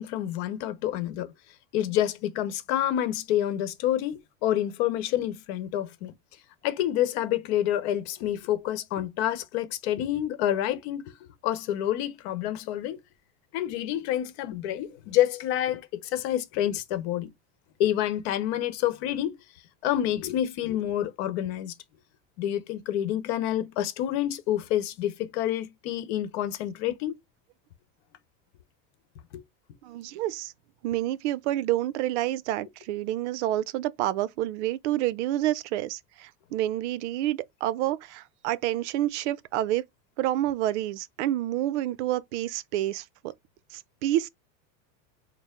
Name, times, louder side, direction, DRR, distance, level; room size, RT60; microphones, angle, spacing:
voice 1, 0.0-1.3 1.7-6.1 6.6-11.0 11.4-13.0 13.5-17.3 17.8-19.4 19.8-21.7 22.4-27.2 29.3-29.4, left 12 dB, 55° left, 0.9 m, -28 dB
voice 2, 29.8-30.5 30.8-39.8 40.2-43.3 43.7-44.3, right 14 dB, 65° right, 0.5 m, -28 dB
4.5 x 2.0 x 3.6 m
supercardioid pair, 155°, 37 cm